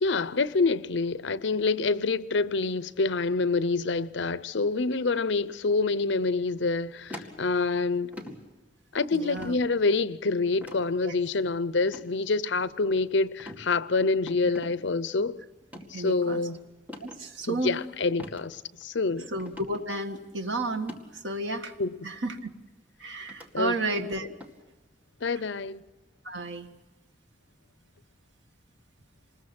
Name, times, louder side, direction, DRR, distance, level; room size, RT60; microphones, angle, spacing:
voice 1, 0.0-8.1 8.9-15.4 15.9-16.6 17.5-19.3 21.8-21.9 23.5-23.8 25.2-25.8, left 3 dB, 75° left, 0.7 m, -27 dB
sound 1, 7.1-7.8 8.1-8.4 9.4-9.6 10.6-10.8 11.8-12.1 12.6-13.0 13.4-13.6 14.3-14.7 15.6-15.9 16.9-17.2 18.2-18.4 18.8-18.9 19.4-19.8 20.8-21.0 22.1-22.2 23.3-23.5 24.4-24.6, left 1 dB, 10° right, 2.2 m, -42 dB
voice 2, 9.1-9.6 11.0-11.1 14.4-14.5 15.9-16.4 17.0-17.8 19.3-21.8 22.0-22.4 23.0-24.3 26.2-26.7, right 2 dB, 85° right, 1.8 m, -32 dB
26.5 x 20.5 x 6.1 m
head